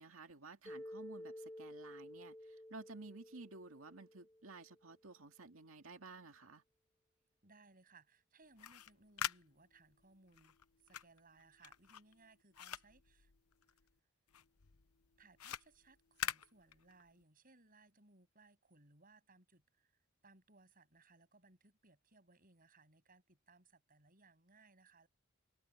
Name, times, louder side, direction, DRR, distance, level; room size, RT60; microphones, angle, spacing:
voice 1, 0.0-6.6, right 3 dB, 65° right, 2.3 m, -54 dB
Mallet percussion, 0.7-4.8, equal, 10° left, 5.2 m, -52 dB
voice 2, 7.4-10.6 10.8-13.3 15.2-25.1, right 3 dB, 40° right, 7.6 m, -66 dB
Taking cassette out from box, 8.4-14.0 14.3-17.2, left 10 dB, 80° left, 0.9 m, -46 dB
head